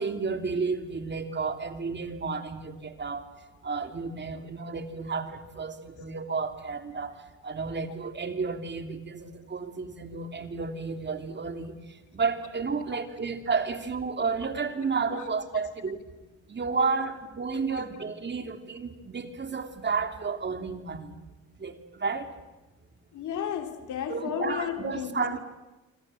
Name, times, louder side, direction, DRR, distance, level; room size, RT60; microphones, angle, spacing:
voice 1, 0.0-3.3 3.6-16.0 16.5-21.1 21.6-22.3 24.1-25.4, right 4 dB, 35° right, 7 dB, 2.8 m, -32 dB
voice 2, 23.1-25.4, left 9 dB, 75° left, 6 dB, 3.0 m, -33 dB
26.5 x 25.5 x 7.7 m, 1.1 s
cardioid pair, 90°, 30 cm